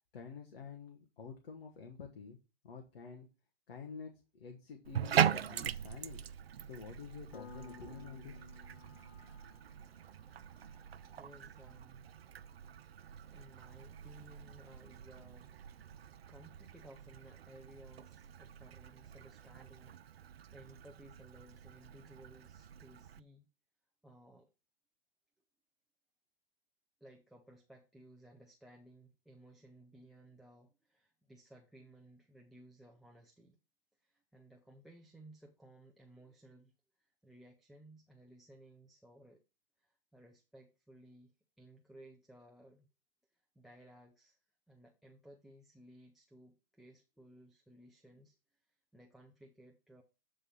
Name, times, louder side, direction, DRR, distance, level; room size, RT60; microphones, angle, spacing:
voice 1, 0.1-2.4 2.6-3.3 3.7-6.2 6.6-8.4, left 5 dB, 70° left, 1.6 m, -49 dB
Bathtub (filling or washing), 4.8-23.2, right 9 dB, 90° right, 0.5 m, -41 dB
Piano, 7.3-17.7, left 6 dB, 50° left, 1.7 m, -61 dB
voice 2, 11.0-12.1 12.9-15.9 16.3-23.5 24.0-24.5 27.0-33.6 34.0-36.7 37.0-39.4 39.8-42.9 43.6-44.4 44.7-48.4 48.9-50.0, right 1 dB, ahead, 0.3 m, -59 dB
8.0 x 3.9 x 5.5 m
hypercardioid pair, 125°, 30 cm